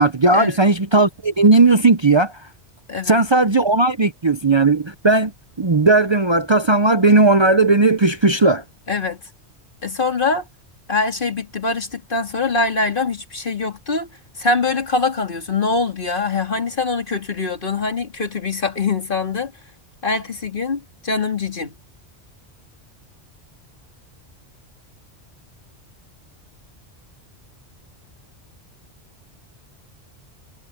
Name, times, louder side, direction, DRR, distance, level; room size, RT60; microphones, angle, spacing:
voice 1, 0.0-2.3 3.1-5.3 5.6-8.6, right 3 dB, 30° right, 0.6 m, -16 dB
voice 2, 2.9-3.2 8.9-9.2 9.8-10.4 10.9-14.1 14.4-19.5 20.0-21.7, left 4 dB, 50° left, 2.7 m, -23 dB
omnidirectional pair, 1.2 m